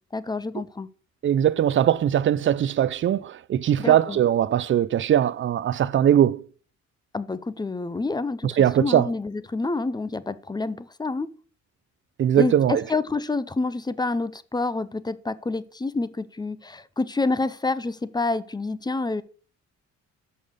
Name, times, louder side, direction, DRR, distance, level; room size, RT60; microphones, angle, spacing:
voice 1, 0.1-0.9 3.8-4.2 7.1-11.3 12.4-19.2, left 3 dB, 15° left, 0.5 m, -28 dB
voice 2, 1.2-6.5 8.4-9.1 12.2-12.8, right 10 dB, 40° right, 0.4 m, -21 dB
6.5 x 5.5 x 6.7 m
cardioid pair, 90°, 30 cm